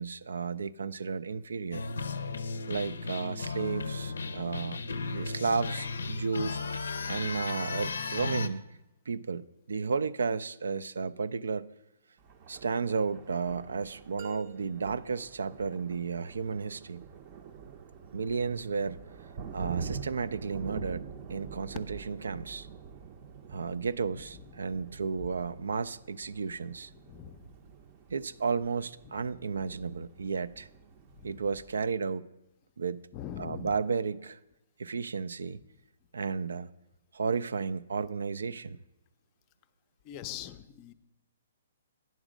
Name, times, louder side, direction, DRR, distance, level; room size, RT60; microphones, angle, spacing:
voice 1, 0.0-1.9 2.7-4.8 5.1-6.6 7.1-8.6 9.1-11.7 12.5-17.0 18.1-19.0 19.5-22.7 23.5-26.9 28.1-30.7 31.2-32.3 32.8-33.1 33.4-34.4 34.8-35.6 36.1-36.7 37.1-38.8, right 5 dB, 85° right, 17 dB, 0.3 m, -33 dB
sound 1, 1.7-8.5, left 4 dB, 90° left, 0.5 m, -35 dB
Thunder, 12.2-31.9, right 5 dB, 40° right, 0.6 m, -46 dB
sound 2, 14.2-16.2, right 8 dB, 70° right, 0.9 m, -52 dB
voice 2, 26.9-27.5 29.1-29.2 31.1-31.5 33.1-33.8 40.0-40.9, left 11 dB, 30° left, 12 dB, 0.4 m, -43 dB
9.1 x 6.2 x 5.0 m, 0.95 s
hypercardioid pair, 145°, 0 cm